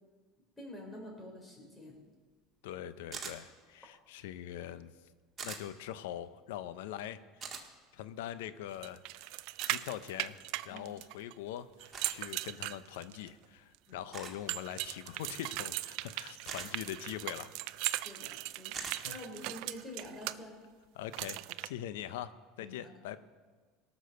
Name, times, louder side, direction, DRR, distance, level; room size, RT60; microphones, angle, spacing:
voice 1, 0.6-2.0 10.7-10.8 13.9-14.0 18.0-20.6 22.6-22.8, left 1 dB, 15° left, 0 dB, 4.1 m, -47 dB
voice 2, 2.6-4.9 5.4-7.5 7.9-9.4 9.7-17.6 19.0-19.2 20.9-23.2, left 11 dB, 85° left, 14 dB, 0.6 m, -43 dB
sound 1, 3.1-3.4 5.4-5.6 7.4-7.6 9.6-9.8 11.9-12.2 14.1-14.4 16.5-16.7 18.7-19.0, right 5 dB, 30° right, 1.8 m, -42 dB
sound 2, 8.8-11.3 11.8-13.3 14.5-20.3 21.1-21.7, right 18 dB, 70° right, 0.4 m, -38 dB
18.0 x 6.2 x 6.7 m, 1.4 s
supercardioid pair, 115°, 0 cm